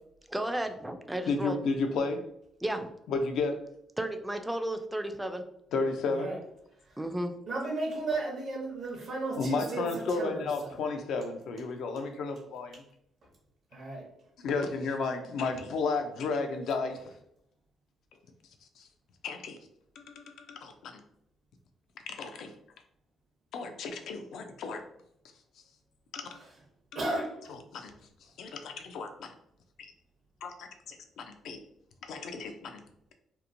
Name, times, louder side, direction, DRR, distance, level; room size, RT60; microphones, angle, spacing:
voice 1, 0.3-1.6 2.6-2.9 4.0-5.4 7.0-7.3, right 1 dB, 10° right, 6 dB, 0.3 m, -33 dB
voice 2, 1.3-2.2 3.1-3.6 5.7-6.4 9.4-12.8 14.4-17.1 18.8-18.9 19.2-19.6 20.0-21.0 22.1-22.5 23.5-24.8 26.1-26.4 27.5-27.9 28.4-29.3 29.8-29.9 30.4-31.6 32.0-32.8, left 4 dB, 75° left, 6 dB, 0.4 m, -33 dB
voice 3, 7.5-9.9 10.2-10.7 13.7-14.0 26.9-27.3, right 2 dB, 70° right, -3 dB, 0.7 m, -34 dB
2.8 x 2.1 x 2.5 m, 0.76 s
cardioid pair, 90°, 0 cm